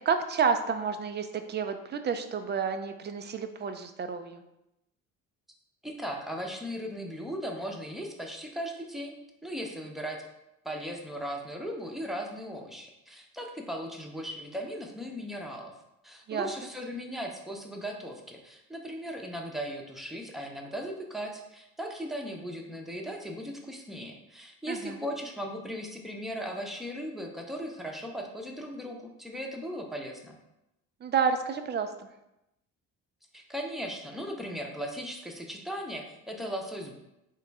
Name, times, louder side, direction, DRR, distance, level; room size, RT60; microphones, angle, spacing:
voice 1, 0.1-4.4 16.3-16.5 24.7-25.0 31.0-32.1, right 6 dB, 30° right, 8 dB, 0.4 m, -30 dB
voice 2, 5.8-9.2 9.4-10.2 10.6-15.7 16.0-30.4 33.3-36.9, equal, ahead, 1 dB, 0.7 m, -37 dB
3.7 x 3.0 x 3.4 m, 0.88 s
hypercardioid pair, 60°, 38 cm